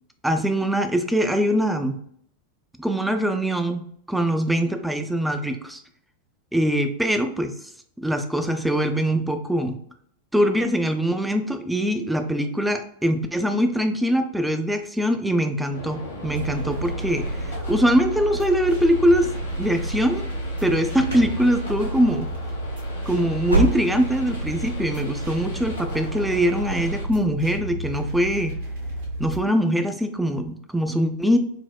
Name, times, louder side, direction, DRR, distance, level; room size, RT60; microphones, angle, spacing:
voice 1, 0.2-2.0 2.8-5.8 6.5-7.5 8.0-9.8 10.3-17.2 17.7-19.3 19.6-20.2 20.6-22.3 23.1-28.6 29.2-31.4, equal, 5° right, 6 dB, 0.4 m, -22 dB
sound 1, 15.7-27.0, left 1 dB, 70° left, 1.1 m, -39 dB
sound 2, 16.3-29.4, right 1 dB, 60° right, 1.1 m, -31 dB
sound 3, 20.6-21.4 21.6-22.1 22.4-22.5 23.0-24.2 24.5-24.6 25.2-25.3, right 2 dB, 90° right, 0.6 m, -26 dB
4.3 x 2.0 x 2.2 m, 0.66 s
figure-of-eight pair, 90°, 0 cm